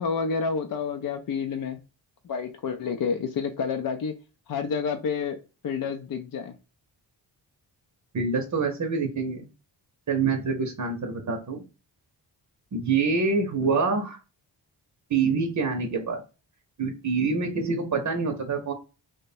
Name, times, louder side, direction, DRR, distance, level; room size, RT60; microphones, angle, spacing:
voice 1, 0.0-1.8 2.2-4.1 4.5-5.4 5.6-6.5, left 5 dB, 50° left, 0.5 m, -29 dB
voice 2, 8.1-9.5 10.1-11.6 12.7-14.2 15.1-16.2 16.8-18.7, right 4 dB, 40° right, 0.7 m, -26 dB
3.1 x 2.2 x 4.1 m
wide cardioid pair, 100°, 45 cm